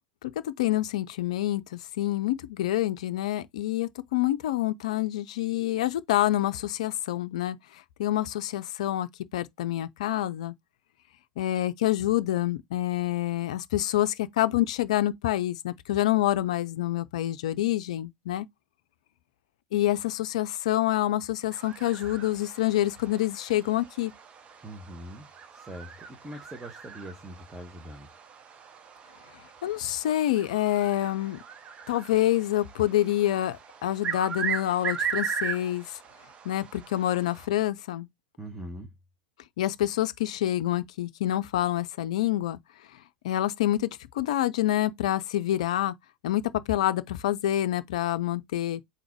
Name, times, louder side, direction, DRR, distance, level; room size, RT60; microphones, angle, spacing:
voice 1, 0.2-7.6 8.0-10.5 11.4-18.5 19.7-24.1 29.6-31.4 31.9-35.8 36.5-38.1 39.6-42.6 43.2-43.9 44.2-45.9 46.2-46.4 46.7-48.8, left 13 dB, 65° left, 0.4 m, -27 dB
sound 1, 21.5-37.5, right 7 dB, 30° right, 0.8 m, -38 dB
voice 2, 24.6-28.1 38.4-38.9, right 1 dB, 10° right, 1.0 m, -42 dB
3.9 x 2.8 x 4.5 m
figure-of-eight pair, 80°, 4 cm